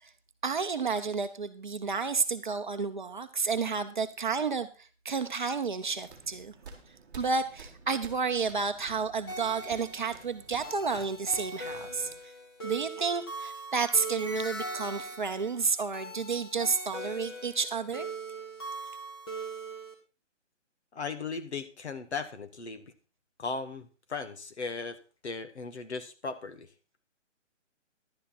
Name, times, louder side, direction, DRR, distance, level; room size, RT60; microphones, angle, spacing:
voice 1, 0.4-6.5 7.2-12.1 12.6-18.1, right 5 dB, 40° right, 8 dB, 0.8 m, -31 dB
sound 1, 5.9-12.1, right 4 dB, 15° right, 1.8 m, -51 dB
sound 2, 9.3-19.9, right 2 dB, 20° left, 1.5 m, -40 dB
voice 2, 20.9-22.9 23.4-26.7, left 4 dB, 60° left, 10 dB, 1.6 m, -37 dB
11.5 x 10.0 x 4.2 m, 0.33 s
hypercardioid pair, 175°, 38 cm